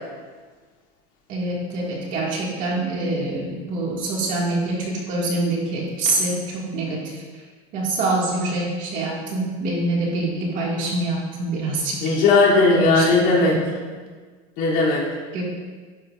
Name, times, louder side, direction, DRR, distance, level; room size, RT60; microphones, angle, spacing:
voice 1, 1.3-7.2 7.7-12.0 12.7-13.6 15.3-15.4, right 2 dB, 40° right, -3 dB, 2.0 m, -25 dB
voice 2, 12.0-13.6 14.6-15.0, left 3 dB, 60° left, -6 dB, 2.9 m, -17 dB
11.5 x 9.4 x 2.5 m, 1.5 s
cardioid pair, 170°, 21 cm